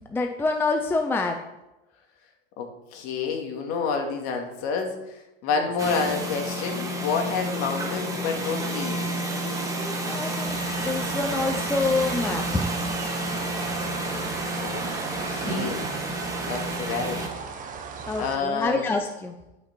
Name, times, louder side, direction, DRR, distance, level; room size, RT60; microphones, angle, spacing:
voice 1, 0.0-1.4 5.6-5.7 10.0-12.7 18.1-19.3, left 3 dB, 5° left, 4 dB, 0.6 m, -27 dB
voice 2, 2.6-9.1 14.6-14.9 15.2-15.9 16.5-17.2 18.2-18.8, left 5 dB, 50° left, 3 dB, 2.2 m, -29 dB
sound 1, 5.8-17.3, right 1 dB, 10° right, 1.7 m, -30 dB
sound 2, 10.5-18.4, right 5 dB, 25° right, 1.2 m, -37 dB
11.5 x 6.0 x 4.5 m, 0.96 s
supercardioid pair, 130°, 31 cm